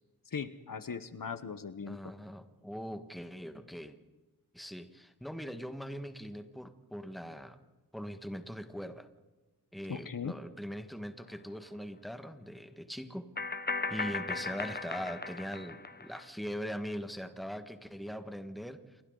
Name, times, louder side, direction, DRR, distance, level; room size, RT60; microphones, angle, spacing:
voice 1, 0.3-2.1 9.9-10.3, left 6 dB, 60° left, 12 dB, 1.1 m, -39 dB
voice 2, 1.9-4.0 4.5-7.6 7.9-9.1 9.7-13.3 13.9-19.0, equal, ahead, 8 dB, 1.6 m, -41 dB
sound 1, 11.3-11.4 13.4-16.2, left 3 dB, 25° left, 0.9 m, -37 dB
28.5 x 24.5 x 4.0 m, 1.2 s
wide cardioid pair, 95°, 37 cm